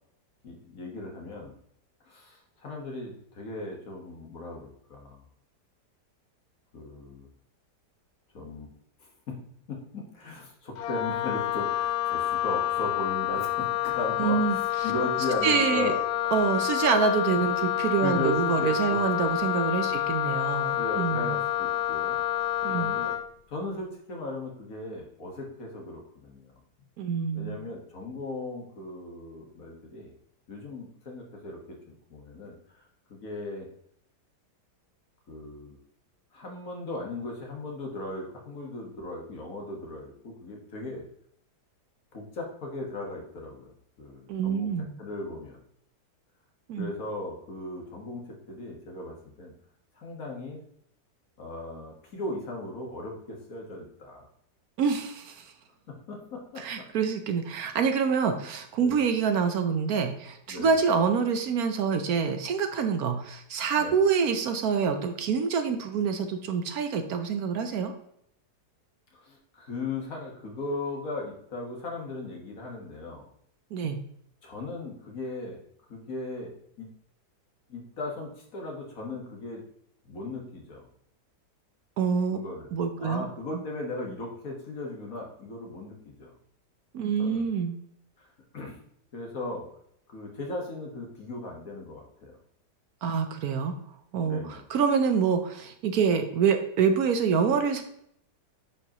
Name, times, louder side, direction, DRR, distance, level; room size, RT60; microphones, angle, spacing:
voice 1, 0.4-1.5 2.1-5.2 6.7-7.3 8.3-8.7 9.0-9.4 9.7-16.0 18.0-19.0 19.9-20.0 20.8-22.2 22.7-23.2 23.5-26.5 27.3-30.1 30.5-32.8 33.1-33.7 35.3-35.8 36.3-41.1 42.1-43.7 44.0-44.7 45.0-45.6 46.8-49.5 50.0-50.6 51.4-54.3 55.9-56.9 58.8-59.0 60.5-60.7 63.8-64.0 69.1-73.3 74.4-75.6 75.9-76.9 77.7-79.6 80.1-80.9 82.3-82.7 83.0-86.3 87.2-87.5 88.2-88.3 88.5-88.8 89.1-89.7 90.1-92.3 94.2-94.6, left 2 dB, 55° left, 0 dB, 1.9 m, -37 dB
Wind instrument woodwind instrument, 10.8-23.3, left 13 dB, 70° left, 1.0 m, -28 dB
voice 2, 14.2-14.6 15.4-15.9 16.3-21.3 22.6-22.9 27.0-27.6 44.3-44.9 46.7-46.9 54.8-55.5 56.6-67.9 73.7-74.0 82.0-82.4 82.7-83.3 86.9-87.8 93.0-93.7 94.1-97.8, right 6 dB, 65° right, 7 dB, 1.1 m, -26 dB
9.6 x 5.2 x 2.9 m, 0.71 s
omnidirectional pair, 1.8 m